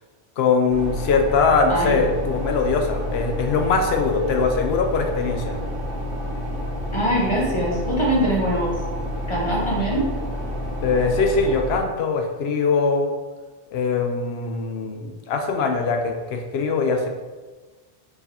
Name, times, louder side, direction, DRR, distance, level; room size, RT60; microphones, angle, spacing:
voice 1, 0.4-5.6 10.8-13.1 13.7-17.1, left 4 dB, 75° left, 4 dB, 0.8 m, -22 dB
sound 1, 0.7-11.8, equal, 60° right, 1.2 m, -29 dB
voice 2, 1.7-2.0 6.9-8.7 9.3-10.1, right 1 dB, 30° left, -4 dB, 0.8 m, -22 dB
4.7 x 3.2 x 2.8 m, 1.3 s
omnidirectional pair, 1.1 m